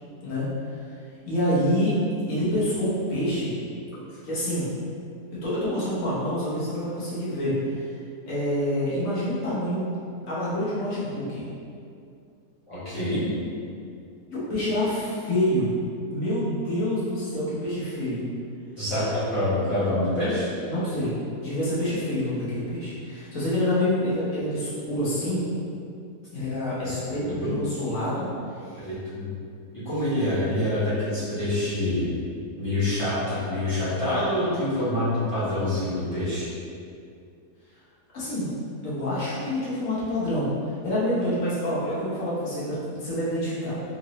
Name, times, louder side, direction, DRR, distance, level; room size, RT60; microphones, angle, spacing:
voice 1, 1.3-1.9 2.3-3.6 4.2-4.7 5.4-7.8 8.3-10.0 10.2-11.5 14.3-15.7 16.1-18.3 20.7-21.1 21.4-25.4 26.3-28.3 28.6-28.9 29.9-30.1 38.1-38.5 38.8-43.8, left 1 dB, 55° left, -9 dB, 1.4 m, -27 dB
voice 2, 12.7-13.2 18.8-20.5 26.8-27.5 28.8-29.3 29.7-32.1 32.6-36.5, left 1 dB, 20° left, -14 dB, 1.1 m, -26 dB
3.8 x 2.6 x 3.0 m, 2.4 s
omnidirectional pair, 1.7 m